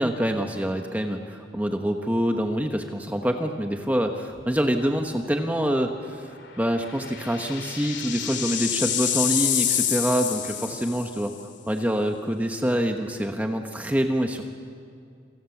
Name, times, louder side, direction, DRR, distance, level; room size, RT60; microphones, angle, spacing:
voice 1, 0.0-6.3 6.6-11.3 11.7-14.5, equal, 10° right, 4 dB, 1.2 m, -26 dB
sound 1, 4.4-4.7 5.1-5.2 6.6-11.3, left 10 dB, 70° left, 2.7 m, -28 dB
28.0 x 25.5 x 7.2 m, 2.4 s
head